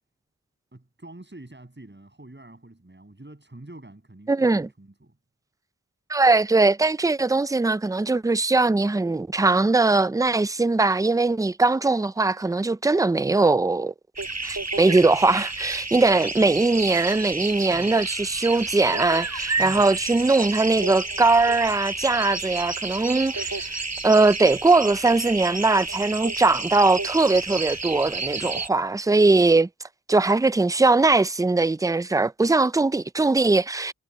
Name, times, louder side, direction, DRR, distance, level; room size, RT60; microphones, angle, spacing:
voice 1, 0.7-5.2 17.7-18.0 19.6-19.9, right 2 dB, 35° right, 7.6 m, -45 dB
voice 2, 4.3-4.7 6.1-13.9 14.4-29.7 30.1-33.9, right 3 dB, 10° right, 0.4 m, -20 dB
sound 1, 14.2-28.7, right 3 dB, 60° right, 5.1 m, -31 dB
wide cardioid pair, 60°, 31 cm